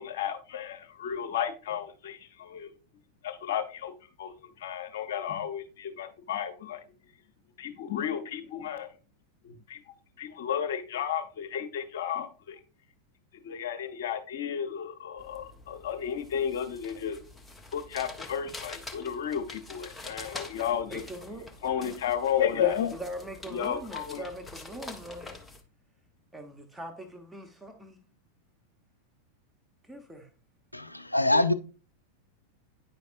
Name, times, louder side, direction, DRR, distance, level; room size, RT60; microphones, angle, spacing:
voice 1, 0.0-2.7 3.2-3.9 4.2-6.8 7.6-8.9 9.4-9.8 10.2-12.6 13.4-17.2 17.7-21.0 21.6-22.9 23.5-24.2 31.3-31.5, left 9 dB, 55° left, 0.9 m, -33 dB
sound 1, 15.2-25.6, left 2 dB, 10° left, 0.7 m, -46 dB
voice 2, 20.8-21.6 22.5-25.4 26.3-28.0 29.8-30.3, right 1 dB, 10° right, 1.0 m, -41 dB
voice 3, 30.7-31.5, left 1 dB, 85° left, 0.4 m, -24 dB
9.2 x 5.2 x 2.5 m
figure-of-eight pair, 90°, 0 cm